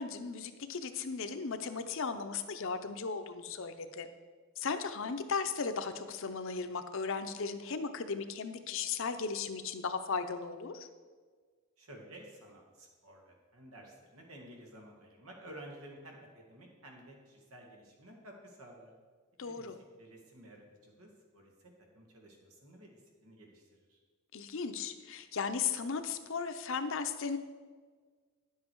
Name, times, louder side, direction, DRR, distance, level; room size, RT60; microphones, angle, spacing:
voice 1, 0.0-4.1 4.6-10.9 19.4-19.8 24.3-27.4, left 5 dB, 65° left, 9 dB, 0.7 m, -36 dB
voice 2, 11.8-18.9 19.4-24.0, right 1 dB, 90° right, 1 dB, 1.9 m, -53 dB
10.0 x 7.5 x 4.6 m, 1.5 s
head